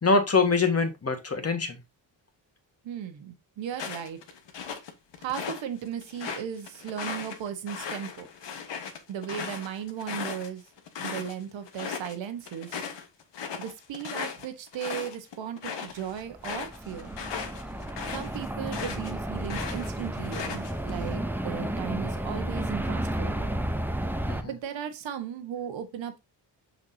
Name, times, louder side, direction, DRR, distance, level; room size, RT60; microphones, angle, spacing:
voice 1, 0.0-1.8 17.7-17.8 24.3-24.5, left 4 dB, 30° left, 1.6 m, -24 dB
voice 2, 2.8-4.2 5.2-8.3 9.1-10.6 11.0-12.9 13.6-17.1 18.1-23.5 24.4-26.2, right 9 dB, 80° right, 1.4 m, -36 dB
sound 1, 3.7-5.6 6.0-11.3 11.7-12.2 12.5-19.1 19.4-20.9, left 6 dB, 70° left, 1.4 m, -37 dB
sound 2, 16.2-24.4, right 1 dB, 5° right, 0.7 m, -32 dB
6.0 x 5.8 x 2.8 m
cardioid pair, 90°, 45 cm